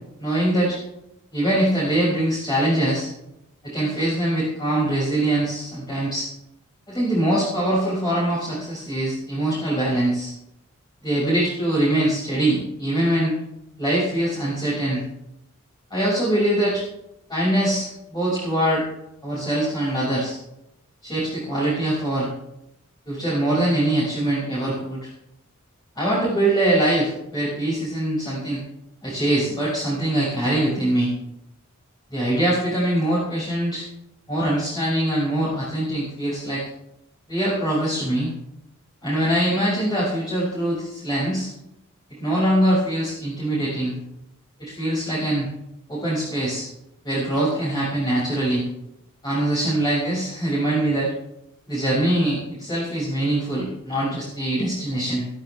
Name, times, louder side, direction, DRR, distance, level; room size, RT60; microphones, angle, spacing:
voice 1, 0.2-0.8 1.3-3.1 3.6-6.3 6.9-10.3 11.0-13.3 13.8-15.0 15.9-16.8 17.3-18.8 19.2-20.4 21.0-22.3 23.1-25.1 25.9-28.6 29.0-31.1 32.1-33.8 34.3-36.6 37.3-38.3 39.0-41.5 42.2-43.9 44.6-45.5 45.9-46.7 47.0-48.6 49.2-51.1 51.7-55.3, right 1 dB, 20° left, -8 dB, 6.6 m, -23 dB
16.5 x 16.5 x 3.6 m, 0.82 s
head